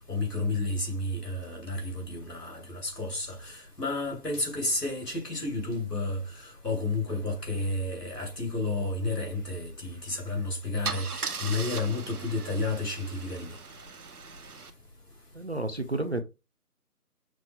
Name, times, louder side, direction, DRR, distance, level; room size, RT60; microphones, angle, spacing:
voice 1, 0.1-13.6, left 2 dB, 85° left, 2.7 m, -31 dB
Car / Engine starting / Idling, 10.1-10.3 10.8-14.7, right 5 dB, 70° right, 0.9 m, -38 dB
voice 2, 15.3-16.2, right 2 dB, 45° right, 0.5 m, -31 dB
5.9 x 2.1 x 3.4 m
figure-of-eight pair, 160°, 46 cm